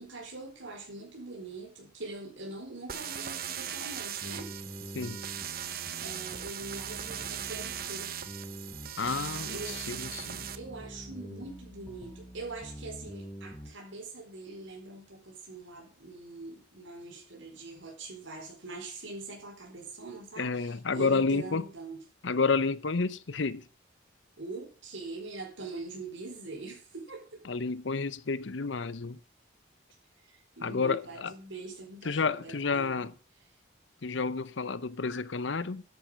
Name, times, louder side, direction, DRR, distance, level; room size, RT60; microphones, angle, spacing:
voice 1, 0.0-4.5 5.7-8.4 9.5-9.9 10.5-22.0 24.4-27.4 30.2-33.0, right 2 dB, 85° right, 4.8 m, -43 dB
sound 1, 2.9-10.6, right 10 dB, 50° right, 1.0 m, -39 dB
sound 2, 4.2-13.7, equal, 5° left, 4.4 m, -45 dB
voice 2, 9.0-10.5 20.4-21.6 22.2-23.6 27.5-29.2 30.6-31.3 32.0-33.1 34.0-35.8, left 4 dB, 75° left, 0.8 m, -30 dB
11.0 x 8.3 x 6.5 m
head